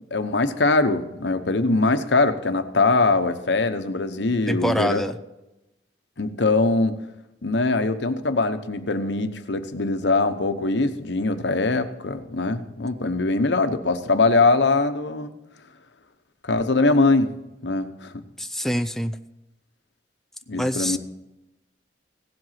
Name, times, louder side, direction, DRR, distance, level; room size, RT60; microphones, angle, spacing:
voice 1, 0.1-5.0 6.2-7.0 7.4-15.3 16.4-17.3 17.6-18.2 20.5-21.0, left 3 dB, 80° left, 9 dB, 1.0 m, -22 dB
voice 2, 4.5-5.1 18.4-19.2 20.6-21.0, equal, ahead, 9 dB, 0.4 m, -25 dB
16.5 x 7.9 x 5.8 m, 0.93 s
head